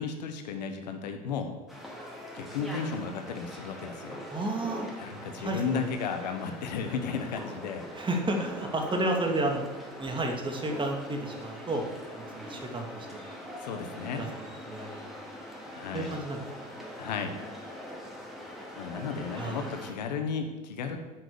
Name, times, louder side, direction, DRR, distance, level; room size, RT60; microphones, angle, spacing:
voice 1, 0.0-1.5 2.3-4.2 5.0-7.9 13.6-14.2 15.8-16.1 17.0-17.4 18.8-21.0, left 6 dB, 85° left, 6 dB, 1.3 m, -34 dB
sound 1, 1.7-19.9, equal, ahead, 3.0 m, -42 dB
voice 2, 4.3-4.9 5.4-5.9 7.9-9.6 10.0-11.8 12.1-13.3 13.8-15.1 15.9-16.7 19.4-19.6, right 2 dB, 25° right, 2 dB, 2.4 m, -32 dB
10.0 x 6.3 x 6.9 m, 1.1 s
hypercardioid pair, 80°, 21 cm